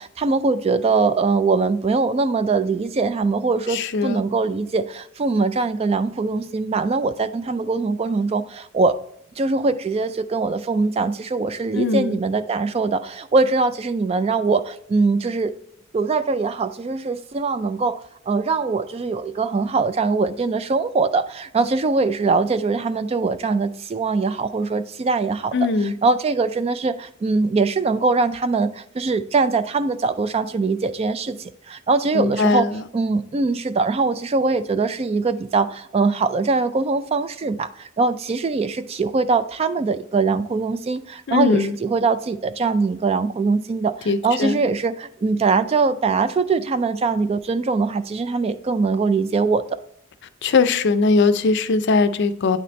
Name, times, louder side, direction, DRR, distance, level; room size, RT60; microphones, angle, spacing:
voice 1, 0.0-9.0 9.4-15.5 15.9-25.5 25.8-32.7 32.9-49.8, right 4 dB, 30° right, 0.3 m, -22 dB
voice 2, 3.7-4.2 11.7-12.2 25.5-25.9 32.1-32.8 41.3-41.8 44.1-44.6 50.4-52.6, left 4 dB, 55° left, 0.5 m, -20 dB
9.1 x 4.2 x 3.1 m
head